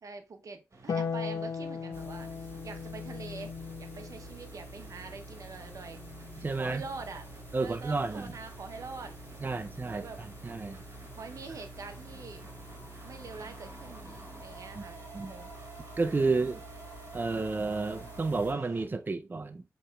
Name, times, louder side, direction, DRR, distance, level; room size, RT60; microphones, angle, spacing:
voice 1, 0.0-3.5 3.8-6.0 6.6-7.3 7.6-10.2 11.1-12.4 13.0-15.5 16.1-16.6, right 4 dB, 80° right, 0.6 m, -45 dB
sound 1, 0.7-18.8, right 3 dB, 60° right, 1.2 m, -51 dB
Harp, 0.9-7.4 9.0-10.0, left 6 dB, 80° left, 0.3 m, -40 dB
sound 2, 1.9-18.5, right 1 dB, 40° left, 1.6 m, -49 dB
voice 2, 6.4-6.8 7.5-8.3 9.4-10.0 10.4-10.8 14.7-14.8 15.1-15.3 16.0-16.6 17.1-19.6, right 3 dB, 35° right, 0.4 m, -31 dB
7.8 x 3.0 x 2.2 m
cardioid pair, 55°, 6 cm